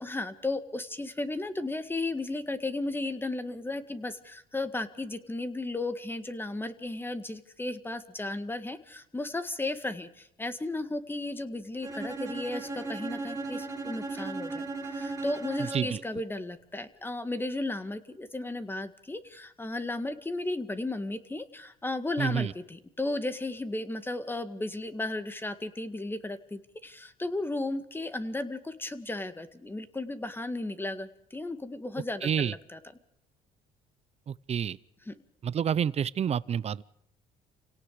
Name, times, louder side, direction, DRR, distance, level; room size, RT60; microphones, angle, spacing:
voice 1, 0.0-14.7 14.9-32.8 35.1-35.2, left 2 dB, 10° left, 10 dB, 1.9 m, -34 dB
Bowed string instrument, 11.8-16.1, right 3 dB, 15° right, 3.9 m, -36 dB
voice 2, 15.6-16.0 22.2-22.5 32.2-32.5 34.3-34.8 35.4-36.8, right 8 dB, 40° right, 20 dB, 0.7 m, -29 dB
29.5 x 18.0 x 5.0 m, 0.72 s
cardioid pair, 110°, 17 cm